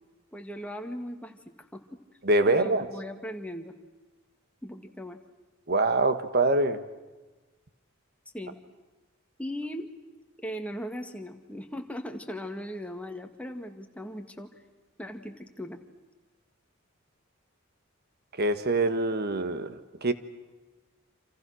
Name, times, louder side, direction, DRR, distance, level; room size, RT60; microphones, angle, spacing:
voice 1, 0.3-2.0 2.5-3.7 4.6-5.2 8.3-8.6 9.4-9.9 10.4-14.5 15.0-15.8, equal, 5° left, 4 dB, 1.9 m, -38 dB
voice 2, 2.2-2.9 5.7-6.8 18.4-20.1, right 2 dB, 50° right, 10 dB, 1.6 m, -24 dB
28.0 x 27.5 x 6.4 m, 1.2 s
head